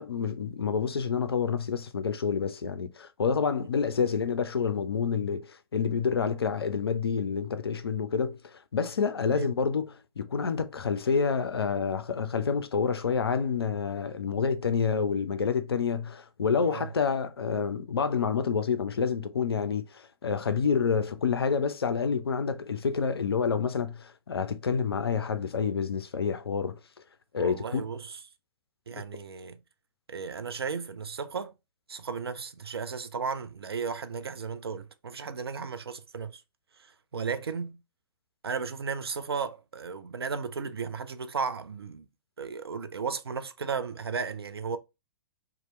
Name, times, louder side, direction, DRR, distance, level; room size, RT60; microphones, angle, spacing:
voice 1, 0.0-26.8 27.3-27.8, left 6 dB, 75° left, 0.4 m, -28 dB
voice 2, 16.6-16.9 27.4-28.2 28.9-29.6 30.1-31.5 31.9-36.4 36.8-37.8 38.4-42.1 42.4-44.8, right 5 dB, 75° right, 0.4 m, -35 dB
2.8 x 2.3 x 3.0 m
figure-of-eight pair, 110°, 13 cm